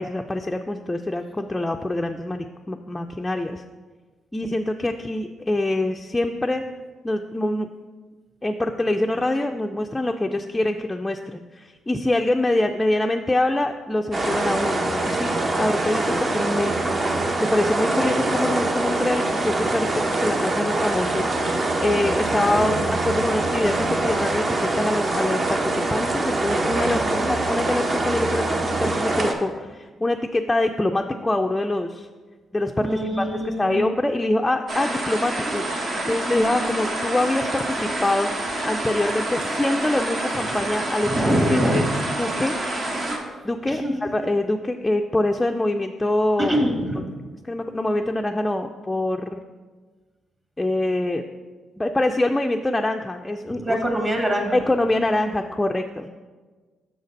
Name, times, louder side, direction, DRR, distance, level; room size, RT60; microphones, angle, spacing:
voice 1, 0.0-3.6 4.3-6.6 7.0-7.7 8.4-16.8 17.4-27.0 27.3-32.1 32.5-35.6 36.1-41.1 41.5-41.8 42.2-42.6 43.4-46.5 47.4-49.4 50.6-51.2 51.8-53.8 54.5-56.1, left 1 dB, 15° left, 3 dB, 0.3 m, -25 dB
sound 1, 14.1-29.3, right 2 dB, 45° right, 0.8 m, -24 dB
voice 2, 22.5-22.8 26.9-27.3 32.8-33.8 41.0-41.9 43.7-43.9 46.4-47.0 53.5-54.5, equal, 25° right, 2 dB, 1.5 m, -24 dB
sound 2, 34.7-43.2, right 1 dB, 60° right, 1.2 m, -28 dB
6.4 x 4.0 x 5.2 m, 1.4 s
supercardioid pair, 60°, 0 cm